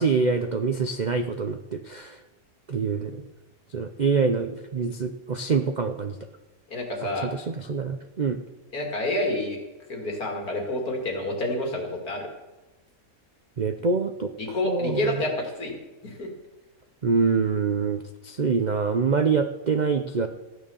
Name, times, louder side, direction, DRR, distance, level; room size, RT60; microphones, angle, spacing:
voice 1, 0.0-2.2 2.7-3.2 3.7-6.2 7.0-8.4 13.6-15.2 17.0-20.3, right 5 dB, 60° right, 8 dB, 0.4 m, -25 dB
voice 2, 6.7-7.3 8.7-9.6 9.9-12.3 13.8-13.9 14.4-15.7 16.0-16.3, left 1 dB, 70° left, 1 dB, 3.0 m, -28 dB
14.5 x 9.4 x 7.0 m, 1.1 s
omnidirectional pair, 1.7 m